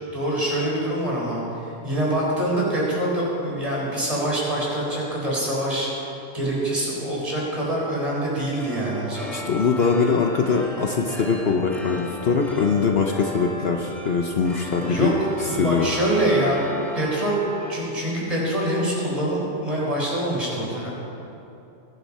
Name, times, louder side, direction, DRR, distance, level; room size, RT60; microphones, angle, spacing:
voice 1, 0.1-9.4 14.7-16.6 16.9-20.9, right 1 dB, 30° right, -5 dB, 4.4 m, -25 dB
sound 1, 8.6-17.8, equal, ahead, 2.4 m, -36 dB
voice 2, 9.3-15.1 15.4-15.9, left 5 dB, 55° left, 3 dB, 1.0 m, -22 dB
22.0 x 11.0 x 4.2 m, 2.9 s
omnidirectional pair, 1.3 m